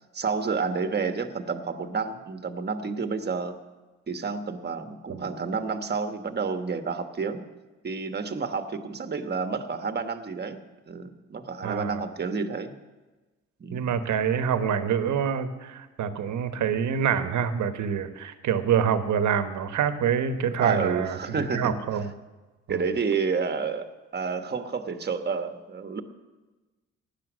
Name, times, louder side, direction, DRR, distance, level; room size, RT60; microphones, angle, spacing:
voice 1, 0.1-3.5 4.1-7.4 7.8-10.6 10.9-12.7 13.6-13.9 20.6-21.8 22.7-23.9 24.1-26.0, right 5 dB, 35° right, 8 dB, 1.3 m, -29 dB
voice 2, 11.6-12.0 13.7-22.1 22.7-22.8, right 7 dB, 70° right, 9 dB, 1.2 m, -26 dB
16.0 x 10.5 x 6.3 m, 1.2 s
cardioid pair, 90°, 30 cm